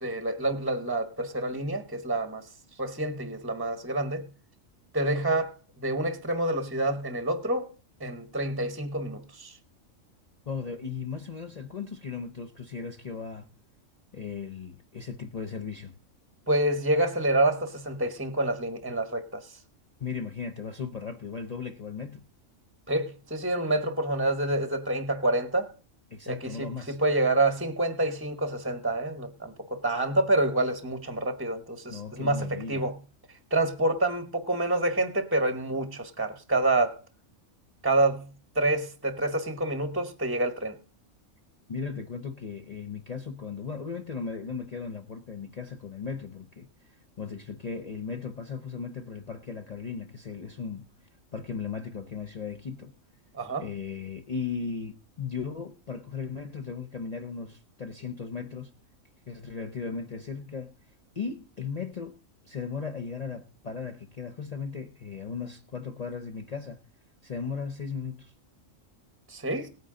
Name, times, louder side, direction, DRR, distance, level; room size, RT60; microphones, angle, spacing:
voice 1, 0.0-2.5 2.8-4.3 4.9-7.7 8.0-9.6 16.5-19.6 22.9-25.7 26.3-33.0 33.3-37.0 37.8-40.8 53.3-53.6 69.3-69.7, right 2 dB, 10° right, 1.0 m, -28 dB
voice 2, 10.5-13.5 14.1-15.9 20.0-22.2 26.1-27.0 31.9-32.8 41.7-50.8 51.3-52.9 53.6-58.7 59.3-60.7 61.1-62.2 62.4-66.8 67.2-68.3, left 5 dB, 35° left, 0.7 m, -37 dB
18.0 x 9.3 x 3.7 m
omnidirectional pair, 1.4 m